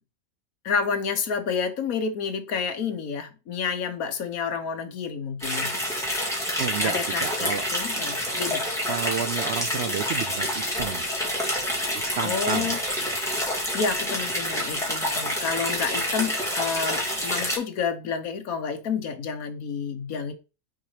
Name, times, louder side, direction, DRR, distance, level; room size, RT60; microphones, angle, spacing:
voice 1, 0.6-5.7 6.8-8.7 12.2-12.8 13.7-20.3, left 6 dB, 70° left, 8 dB, 1.4 m, -29 dB
sound 1, 5.4-17.6, equal, ahead, 2.2 m, -28 dB
voice 2, 6.6-7.6 8.8-11.1 11.9-12.7, right 7 dB, 65° right, 10 dB, 0.7 m, -31 dB
6.4 x 4.2 x 5.0 m, 0.30 s
omnidirectional pair, 1.6 m